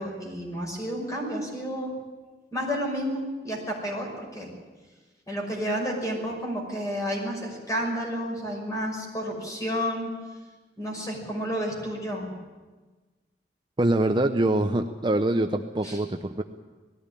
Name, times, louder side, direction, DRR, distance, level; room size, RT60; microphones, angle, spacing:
voice 1, 0.0-1.9 2.5-4.5 5.3-10.1 10.8-12.3 15.8-16.0, equal, 20° left, 0 dB, 5.8 m, -31 dB
voice 2, 13.8-16.4, right 1 dB, 25° right, 6 dB, 0.7 m, -24 dB
19.5 x 15.5 x 9.9 m, 1.3 s
head